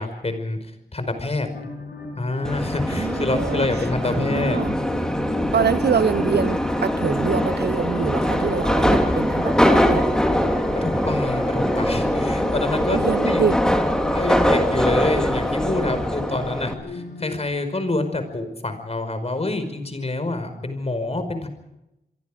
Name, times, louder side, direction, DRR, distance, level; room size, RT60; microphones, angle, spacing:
voice 1, 0.0-1.5 2.2-4.7 10.8-13.4 14.0-21.5, left 2 dB, 40° left, 5.2 m, -27 dB
sound 1, 1.3-17.4, left 3 dB, 85° left, 7.0 m, -35 dB
Subway metro underground, 2.4-16.7, equal, 5° left, 3.4 m, -22 dB
voice 2, 2.9-4.8 5.5-10.1 12.4-12.5 12.9-13.6, right 7 dB, 85° right, 0.9 m, -25 dB
28.0 x 23.5 x 5.1 m
wide cardioid pair, 85°, 17 cm